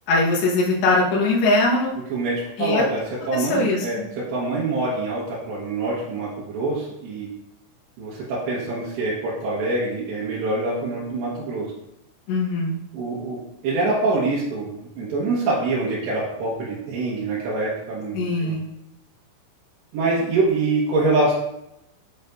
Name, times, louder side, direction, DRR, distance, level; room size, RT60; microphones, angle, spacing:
voice 1, 0.1-1.9 2.6-2.8 3.3-3.9 12.3-12.8 18.1-18.7, left 2 dB, 70° left, -3 dB, 3.3 m, -21 dB
voice 2, 2.1-7.3 8.0-11.7 12.9-18.5 19.9-21.3, right 2 dB, 75° right, -6 dB, 3.4 m, -25 dB
8.9 x 5.0 x 2.6 m, 0.85 s
omnidirectional pair, 5.5 m